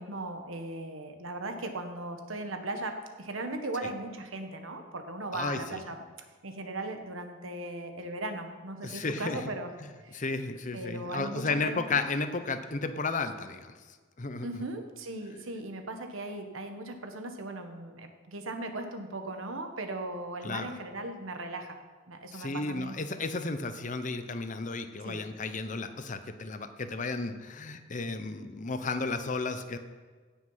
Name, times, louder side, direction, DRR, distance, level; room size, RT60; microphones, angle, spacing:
voice 1, 0.0-6.0 6.4-10.2 10.7-12.0 14.4-21.8 22.1-23.0 25.0-25.2, right 2 dB, 75° right, 6 dB, 1.3 m, -38 dB
voice 2, 5.3-5.8 8.8-9.4 10.1-13.7 14.2-14.5 20.4-20.7 22.3-29.8, left 3 dB, 35° left, 9 dB, 0.7 m, -33 dB
16.5 x 6.2 x 5.7 m, 1.5 s
head